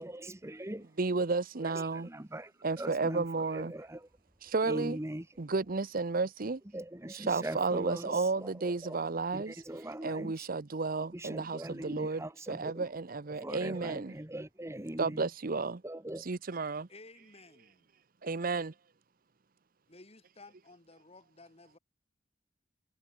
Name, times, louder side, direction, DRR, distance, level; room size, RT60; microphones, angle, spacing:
voice 1, 0.0-0.9 1.6-2.5 2.8-4.1 4.6-5.3 6.7-9.0 9.3-10.5 11.1-12.8 13.3-15.3 15.8-16.2, right 1 dB, 15° right, 1.2 m, -41 dB
voice 2, 1.0-2.1 2.6-3.7 4.4-5.0 5.4-6.6 7.1-9.6 10.0-12.2 12.5-14.1 15.0-15.8 16.2-16.9 18.2-18.7, right 3 dB, 50° right, 0.8 m, -32 dB
voice 3, 16.9-17.9 19.9-21.8, left 3 dB, 35° left, 2.9 m, -55 dB
head